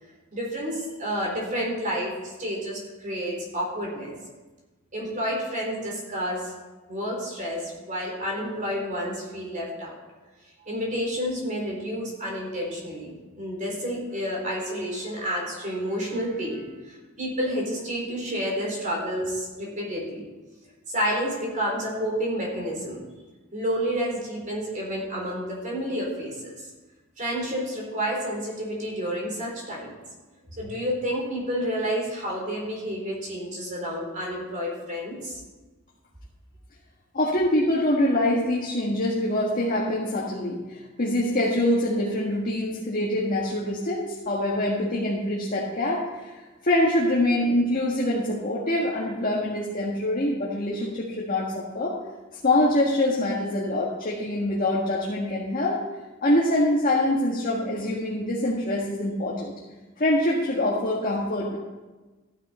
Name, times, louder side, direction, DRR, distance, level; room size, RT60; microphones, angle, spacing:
voice 1, 0.3-4.1 4.9-6.6 6.9-10.0 10.7-20.3 20.9-23.0 23.5-26.7 27.2-30.0 30.6-35.4, equal, 40° right, -2 dB, 3.8 m, -30 dB
voice 2, 37.1-51.9 52.4-55.8 56.2-59.5 60.0-61.6, left 1 dB, 45° left, -4 dB, 1.7 m, -24 dB
14.5 x 9.8 x 4.4 m, 1.2 s
head